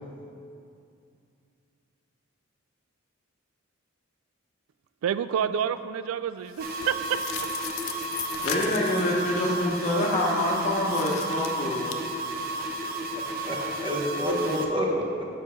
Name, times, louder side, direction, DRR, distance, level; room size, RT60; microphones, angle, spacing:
voice 1, 5.0-7.5, right 8 dB, 80° right, 13 dB, 0.3 m, -29 dB
sound 1, 6.5-9.1 10.8-11.9, left 10 dB, 75° left, 0.5 m, -37 dB
sound 2, 6.6-14.7, right 2 dB, 45° right, 0.6 m, -33 dB
voice 2, 8.4-11.9 12.5-12.6, left 1 dB, 35° left, -3 dB, 0.9 m, -26 dB
voice 3, 13.1-15.2, equal, 25° right, -1 dB, 1.0 m, -29 dB
7.4 x 5.1 x 5.7 m, 2.5 s
head